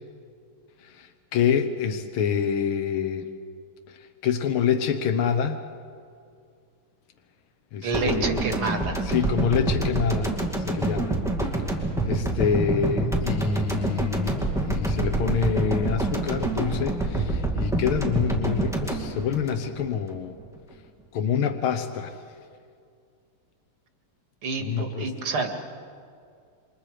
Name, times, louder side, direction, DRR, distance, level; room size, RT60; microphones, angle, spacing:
voice 1, 0.8-3.3 3.9-4.0 4.2-5.6 7.7-8.4 9.1-11.2 12.0-20.4 21.1-22.2 24.6-25.1, left 7 dB, 80° left, 7 dB, 1.9 m, -26 dB
voice 2, 7.8-9.0 24.4-25.5, right 3 dB, 85° right, 4 dB, 2.9 m, -28 dB
sound 1, 7.9-20.1 20.4-20.6, right 2 dB, ahead, 2.3 m, -27 dB
28.5 x 25.5 x 5.0 m, 2.3 s
omnidirectional pair, 2.3 m